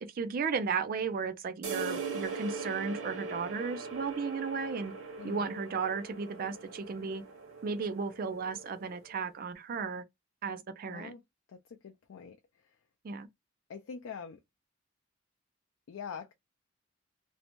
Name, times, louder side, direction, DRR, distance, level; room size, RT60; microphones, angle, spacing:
voice 1, 0.0-4.9 5.2-7.2 7.6-10.0 10.4-11.1 13.0-13.3, right 5 dB, 45° right, 0.3 m, -34 dB
sound 1, 1.6-9.2, right 4 dB, 85° right, 0.9 m, -41 dB
voice 2, 5.2-5.5 10.9-11.2 11.5-12.4 13.7-14.4 15.9-16.3, left 6 dB, 85° left, 0.4 m, -44 dB
2.6 x 2.1 x 2.9 m
head